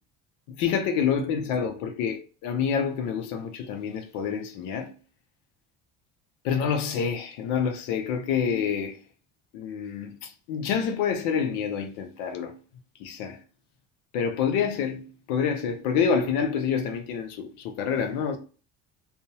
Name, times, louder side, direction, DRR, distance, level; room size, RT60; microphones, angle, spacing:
voice 1, 0.5-4.9 6.4-9.0 9.5-12.6 13.0-13.4 14.1-18.4, left 7 dB, 80° left, 0.5 m, -27 dB
2.6 x 2.1 x 2.7 m
supercardioid pair, 95°, 29 cm